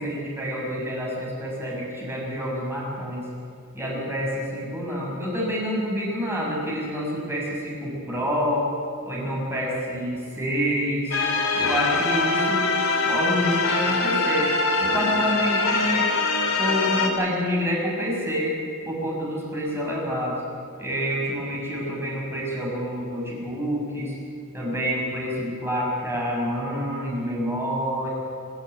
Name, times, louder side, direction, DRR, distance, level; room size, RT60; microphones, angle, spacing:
voice 1, 0.0-3.2 3.7-8.7 9.0-11.2 11.5-12.7 13.1-14.5 14.8-16.1 16.6-18.5 18.8-20.4 20.8-24.1 24.5-28.1, equal, 10° right, -3 dB, 6.6 m, -27 dB
sound 1, 11.1-17.1, left 3 dB, 70° left, 3.0 m, -23 dB
26.5 x 13.0 x 9.2 m, 2.5 s
head